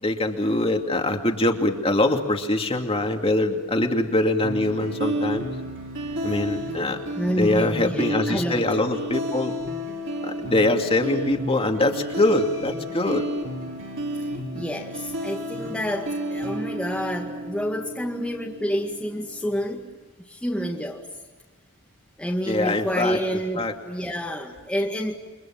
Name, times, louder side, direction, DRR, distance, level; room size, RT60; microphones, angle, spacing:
voice 1, 0.0-5.5 6.2-7.0 7.3-9.5 10.2-13.3 22.5-23.2 23.5-23.7, left 2 dB, 25° left, 3 dB, 2.6 m, -23 dB
sound 1, 4.4-19.4, equal, 60° right, 5.3 m, -32 dB
voice 2, 7.2-8.7 14.5-19.9 20.2-21.1 22.2-25.1, equal, 5° left, -1 dB, 2.0 m, -28 dB
29.5 x 25.5 x 7.4 m, 1.2 s
head